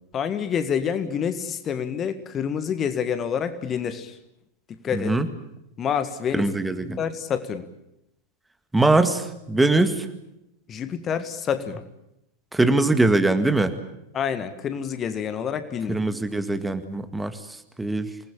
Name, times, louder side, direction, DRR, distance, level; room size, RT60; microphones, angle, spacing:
voice 1, 0.1-4.2 4.8-5.1 5.8-6.5 7.0-7.7 10.7-11.8 14.1-16.0, left 7 dB, 25° left, 11 dB, 1.7 m, -27 dB
voice 2, 4.9-5.3 6.3-7.0 8.7-10.1 12.5-13.7 15.9-17.3 17.8-18.1, right 2 dB, 5° right, 9 dB, 1.9 m, -21 dB
27.5 x 20.0 x 8.7 m, 0.84 s
figure-of-eight pair, 90°, 0 cm